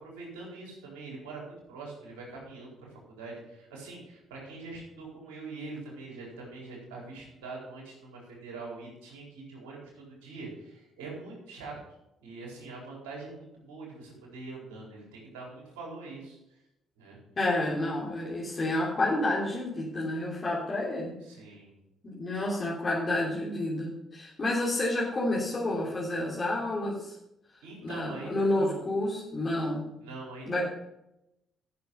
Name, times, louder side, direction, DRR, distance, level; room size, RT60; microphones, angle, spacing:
voice 1, 0.0-11.7 12.2-16.4 17.0-17.2 21.2-21.7 27.6-28.8 30.0-30.6, right 3 dB, 80° right, -3 dB, 4.3 m, -43 dB
voice 2, 17.4-21.2 22.0-27.1 27.8-29.9 30.5-30.6, left 1 dB, 40° left, -5 dB, 3.2 m, -29 dB
13.0 x 6.9 x 5.5 m, 0.87 s
hypercardioid pair, 50°, 0 cm